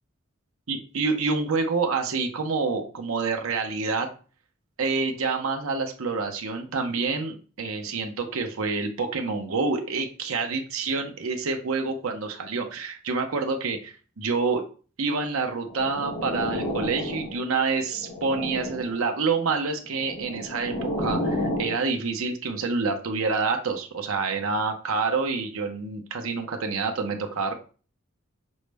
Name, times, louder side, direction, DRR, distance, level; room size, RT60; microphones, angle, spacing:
voice 1, 0.7-4.1 4.8-14.6 15.0-27.5, right 4 dB, 80° right, 5 dB, 0.7 m, -27 dB
sound 1, 15.7-17.5 17.9-19.0 19.9-21.8, left 1 dB, 45° left, 1.3 m, -31 dB
6.2 x 2.1 x 3.3 m, 0.38 s
head